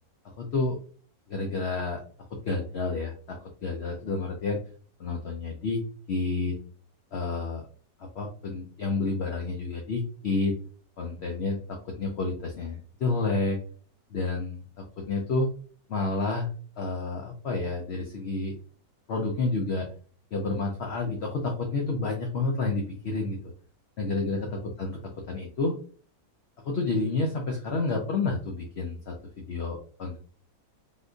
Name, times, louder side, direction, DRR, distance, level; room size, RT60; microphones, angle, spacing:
voice 1, 0.4-0.8 1.3-2.0 2.3-4.6 5.0-5.8 6.1-6.6 7.1-7.6 8.0-10.6 11.0-13.6 14.1-15.5 15.9-16.5 16.8-18.6 19.1-19.9 20.3-23.4 24.0-25.7 26.6-30.2, left 3 dB, 65° left, 1 dB, 0.7 m, -30 dB
3.5 x 2.6 x 2.4 m, 0.44 s
omnidirectional pair, 1.6 m